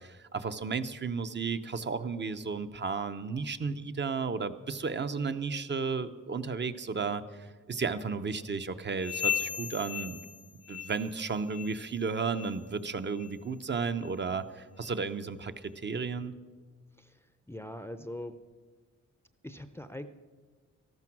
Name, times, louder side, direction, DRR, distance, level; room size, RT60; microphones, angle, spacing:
voice 1, 0.3-10.2 10.7-16.3, right 5 dB, 35° right, 10 dB, 0.7 m, -33 dB
sound 1, 9.0-11.2 11.5-11.9 12.3-12.6 13.2-13.3 14.0-14.1 14.8-14.9, left 9 dB, 50° left, 0.6 m, -36 dB
voice 2, 17.0-18.4 19.4-20.1, left 1 dB, 10° left, 9 dB, 0.6 m, -42 dB
13.5 x 12.0 x 6.0 m, 1.4 s
cardioid pair, 95°, 31 cm